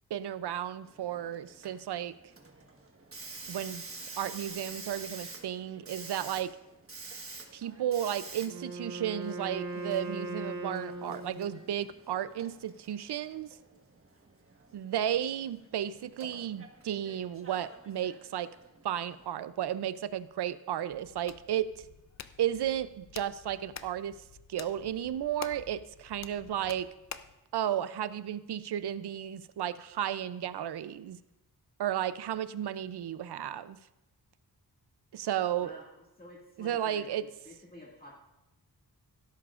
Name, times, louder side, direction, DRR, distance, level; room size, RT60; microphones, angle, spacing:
voice 1, 0.1-2.1 3.5-3.8 4.2-6.5 7.1-7.2 7.5-13.5 14.7-18.5 18.8-21.8 22.4-24.2 24.5-26.9 27.5-31.2 31.8-33.8 35.1-35.8 36.6-37.2, right 10 dB, 85° right, 14 dB, 0.6 m, -33 dB
Hiss, 0.8-19.2, right 3 dB, 35° right, 1.4 m, -49 dB
Wind instrument woodwind instrument, 8.4-11.7, right 2 dB, 55° right, 4.1 m, -39 dB
Hands, 20.9-27.4, left 7 dB, 45° left, 0.5 m, -48 dB
voice 2, 35.6-35.9 36.2-38.1, left 1 dB, 20° left, -4 dB, 2.2 m, -50 dB
16.0 x 13.0 x 2.5 m, 0.96 s
wide cardioid pair, 110°, 39 cm